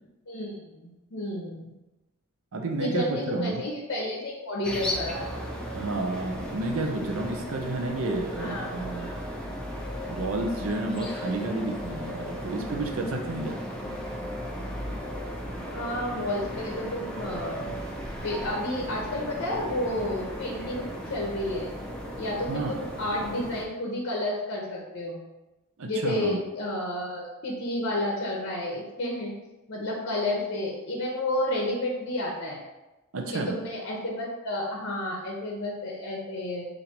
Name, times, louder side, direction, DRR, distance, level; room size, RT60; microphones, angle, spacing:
voice 1, 0.3-1.7 2.8-5.3 8.4-8.8 15.7-17.8 18.2-21.7 22.2-25.2 25.8-29.3 29.7-32.6 33.3-36.7, left 1 dB, 55° left, -2 dB, 0.9 m, -31 dB
voice 2, 2.5-3.6 5.7-9.2 10.1-13.6 22.5-22.8 25.8-26.4 33.1-33.6, right 2 dB, 65° right, 2 dB, 0.6 m, -31 dB
sound 1, 4.6-23.6, equal, 5° left, 0.5 m, -36 dB
6.7 x 2.6 x 2.9 m, 1.0 s
head